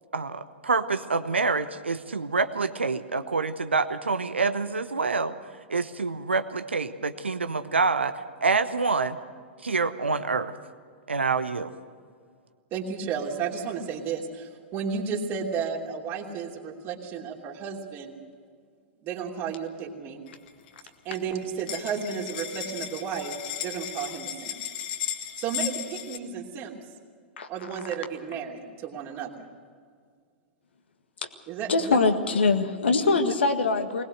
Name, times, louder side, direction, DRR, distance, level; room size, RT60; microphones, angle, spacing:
voice 1, 0.1-5.4 5.7-8.1 8.4-9.2 9.6-10.5 11.1-11.7, right 4 dB, 85° right, 10 dB, 0.9 m, -26 dB
voice 2, 12.7-18.2 19.0-20.2 21.0-24.5 25.4-26.7 27.5-29.5 31.5-32.0, right 6 dB, 35° right, 1 dB, 3.0 m, -33 dB
sound 1, 20.3-20.8 21.1-21.2 21.4-26.2, left 10 dB, 55° left, 1.9 m, -35 dB
voice 3, 31.7-34.0, left 4 dB, 75° left, 6 dB, 1.8 m, -23 dB
21.0 x 19.5 x 6.6 m, 2.1 s
figure-of-eight pair, 100°, 6 cm